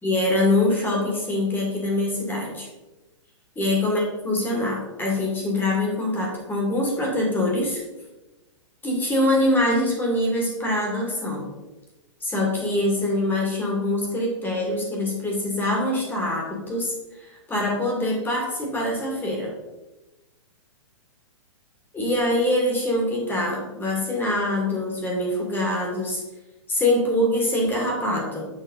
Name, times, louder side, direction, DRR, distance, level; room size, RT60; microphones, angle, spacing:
voice 1, 0.0-2.7 3.6-7.8 8.8-11.5 12.2-19.5 21.9-26.2 26.7-28.5, left 1 dB, 10° left, -2 dB, 2.1 m, -24 dB
7.4 x 5.2 x 3.9 m, 1.1 s
hypercardioid pair, 135°, 16 cm